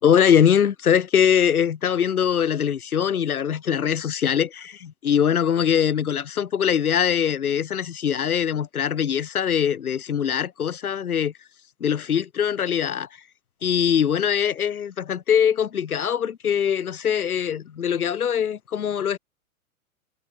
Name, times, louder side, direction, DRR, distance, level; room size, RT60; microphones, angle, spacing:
voice 1, 0.0-11.3 11.8-13.1 13.6-19.2, left 8 dB, 85° left, 0.7 m, -22 dB
figure-of-eight pair, 110°, 43 cm